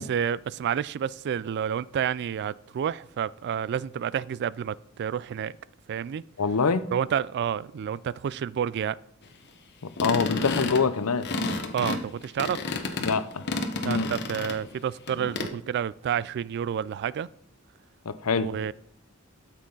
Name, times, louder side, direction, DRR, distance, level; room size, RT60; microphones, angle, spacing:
voice 1, 0.0-5.6 5.9-6.2 6.9-9.0 11.7-12.6 13.8-17.3 18.4-18.7, right 8 dB, 50° right, 0.3 m, -29 dB
voice 2, 6.4-6.8 10.0-11.3 13.0-13.4 13.8-14.1 18.1-18.6, left 5 dB, 80° left, 0.7 m, -25 dB
sound 1, 10.0-14.7 15.1-15.5, left 3 dB, 55° left, 1.1 m, -31 dB
12.5 x 7.3 x 3.9 m
head